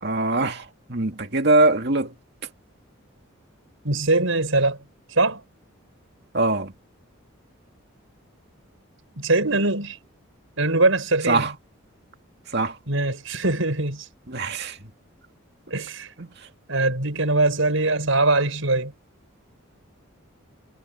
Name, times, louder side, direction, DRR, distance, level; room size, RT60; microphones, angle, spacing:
voice 1, 0.0-2.1 6.3-6.7 11.3-11.5 12.5-12.8 14.3-14.8 16.2-16.3, right 2 dB, 50° right, 2.3 m, -22 dB
voice 2, 3.8-4.8 5.2-5.4 9.2-10.0 10.6-11.4 12.9-14.1 15.7-16.1 16.7-18.9, right 2 dB, 70° right, 5.4 m, -22 dB
head